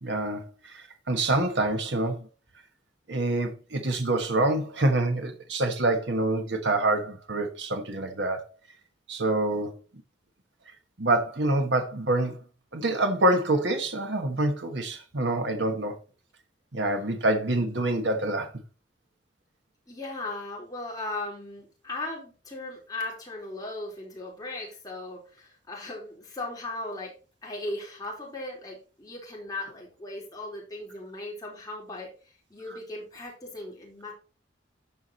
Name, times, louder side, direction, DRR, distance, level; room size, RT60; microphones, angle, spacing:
voice 1, 0.0-2.2 3.1-8.4 9.1-9.8 11.0-12.4 12.7-16.0 16.7-18.5, right 2 dB, 70° right, 1.4 m, -26 dB
voice 2, 19.9-27.1 27.4-34.1, left 2 dB, 20° left, 3.9 m, -37 dB
13.0 x 4.8 x 4.1 m
head